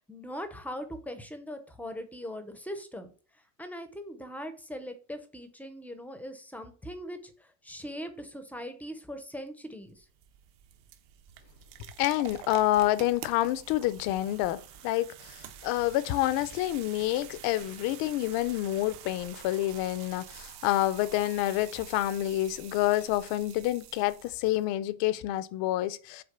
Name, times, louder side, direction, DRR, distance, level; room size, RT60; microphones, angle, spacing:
voice 1, 0.0-3.1 3.6-7.2 7.6-10.0, equal, 5° left, 0.6 m, -40 dB
sound 1, 9.8-24.7, right 11 dB, 55° right, 1.1 m, -47 dB
voice 2, 12.0-26.2, left 15 dB, 45° left, 0.6 m, -28 dB
6.7 x 4.3 x 6.6 m
cardioid pair, 160°, 49 cm